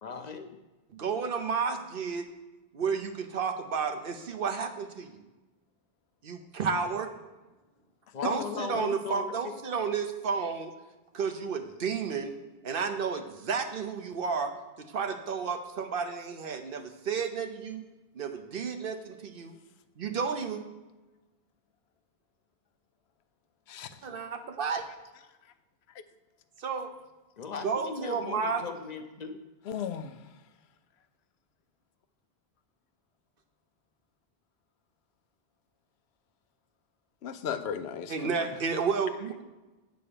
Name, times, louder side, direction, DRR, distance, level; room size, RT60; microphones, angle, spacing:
voice 1, 0.0-0.6 8.1-9.5 24.1-24.2 27.4-29.4, left 5 dB, 45° left, 6 dB, 0.7 m, -38 dB
voice 2, 0.9-2.3 2.7-5.3 6.2-7.1 8.2-10.7 11.1-12.3 12.6-14.5 14.8-17.8 18.1-19.6 20.0-20.6 24.0-24.9 26.6-26.9 27.6-28.6 38.1-39.4, right 5 dB, 65° right, 7 dB, 0.9 m, -32 dB
voice 3, 29.7-30.2 37.2-38.5, left 7 dB, 90° left, 10 dB, 0.9 m, -35 dB
8.7 x 3.9 x 6.8 m, 1.1 s
omnidirectional pair, 1.1 m